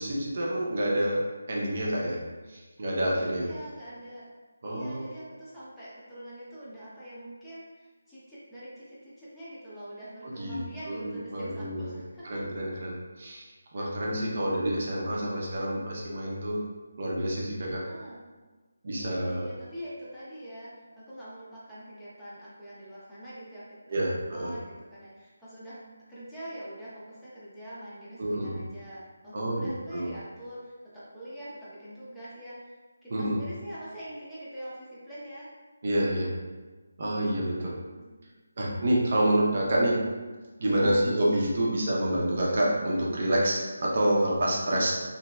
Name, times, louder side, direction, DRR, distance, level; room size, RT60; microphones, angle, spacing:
voice 1, 0.0-2.2 2.5-3.5 4.6-5.1 10.2-11.9 12.2-13.5 13.7-16.6 17.0-17.9 18.8-19.5 23.9-24.5 28.2-28.6 29.3-30.1 33.1-33.4 35.8-36.3 37.0-37.7 38.6-40.1 40.6-44.9, right 1 dB, 50° right, -4 dB, 0.6 m, -28 dB
voice 2, 3.3-4.2 4.6-12.4 13.8-13.9 17.7-18.2 19.0-25.8 26.1-32.7 33.0-35.5 37.6-38.1 40.6-41.0, equal, 5° left, -13 dB, 0.7 m, -44 dB
2.9 x 2.7 x 2.2 m, 1.3 s
figure-of-eight pair, 160°, 0 cm